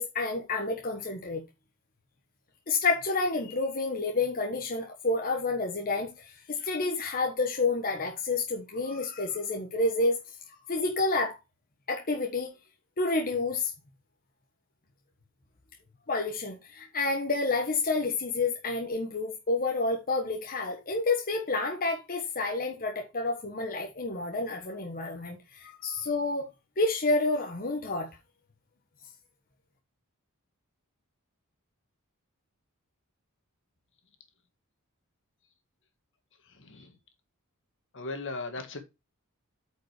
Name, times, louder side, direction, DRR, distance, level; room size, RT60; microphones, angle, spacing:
voice 1, 0.0-1.4 2.7-10.2 10.7-11.4 11.9-12.5 13.0-13.7 16.1-26.5 26.8-28.1, left 3 dB, 40° left, 1.3 m, -29 dB
voice 2, 36.5-37.0 37.9-38.8, left 3 dB, 60° left, 1.7 m, -38 dB
8.8 x 5.3 x 4.9 m
head